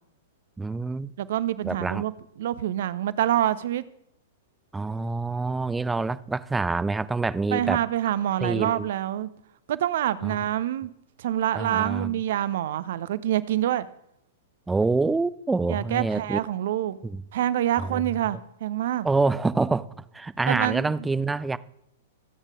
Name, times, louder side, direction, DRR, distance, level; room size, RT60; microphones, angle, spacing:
voice 1, 0.6-1.1 1.6-2.0 4.7-7.8 8.4-8.9 10.2-10.5 11.5-12.2 14.7-16.4 17.0-17.2 17.8-18.0 19.0-19.9 20.1-21.6, right 3 dB, 10° right, 0.4 m, -26 dB
voice 2, 1.2-2.1 2.4-3.8 7.5-9.3 9.7-10.9 11.2-13.9 15.7-17.0 17.3-19.1 20.5-20.9, right 12 dB, 55° right, 0.7 m, -26 dB
23.0 x 8.1 x 3.7 m
figure-of-eight pair, 105°, 0 cm